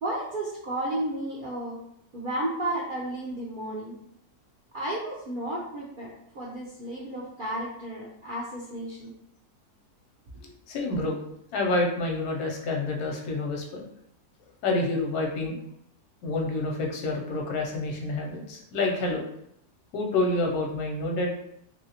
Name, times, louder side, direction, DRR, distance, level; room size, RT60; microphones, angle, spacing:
voice 1, 0.0-1.8 2.1-4.0 4.7-9.1 10.4-10.5, right 1 dB, 65° right, -6 dB, 0.5 m, -33 dB
voice 2, 10.7-11.2 11.5-13.8 14.6-15.6 16.2-19.2 19.9-21.3, left 2 dB, 90° left, 1 dB, 1.2 m, -28 dB
3.0 x 2.7 x 2.8 m, 0.74 s
omnidirectional pair, 1.6 m